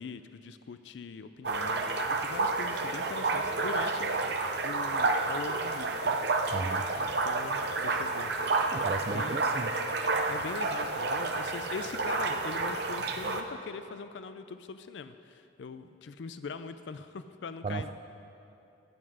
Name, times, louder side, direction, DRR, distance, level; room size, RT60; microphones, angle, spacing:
voice 1, 0.0-4.1 4.6-6.5 6.9-8.3 9.1-9.5 10.3-17.9, left 5 dB, 70° left, 11 dB, 0.4 m, -42 dB
sound 1, 1.4-13.4, right 3 dB, 60° right, 0.7 m, -30 dB
voice 2, 6.5-6.9 8.7-9.8 17.6-17.9, right 3 dB, 30° right, 7 dB, 0.3 m, -34 dB
15.0 x 7.9 x 4.9 m, 2.8 s
head